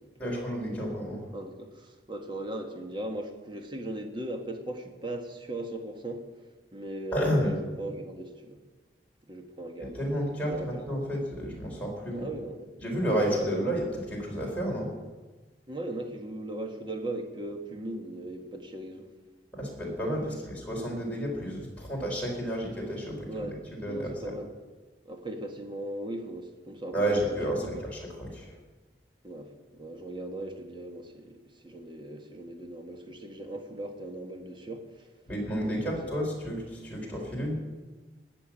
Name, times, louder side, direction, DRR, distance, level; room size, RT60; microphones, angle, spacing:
voice 1, 0.2-1.3 7.1-7.5 9.8-12.3 12.8-14.9 19.5-23.6 23.8-24.3 26.9-28.5 35.3-37.5, equal, 10° left, -3 dB, 4.5 m, -31 dB
voice 2, 1.3-6.3 6.7-8.6 9.3-10.0 10.5-10.7 12.1-12.7 13.2-13.6 15.7-19.1 20.2-20.3 23.3-23.5 23.9-24.5 25.0-27.8 29.2-35.1 35.6-36.0, right 1 dB, 25° right, 4 dB, 1.6 m, -38 dB
19.0 x 7.0 x 8.9 m, 1.3 s
head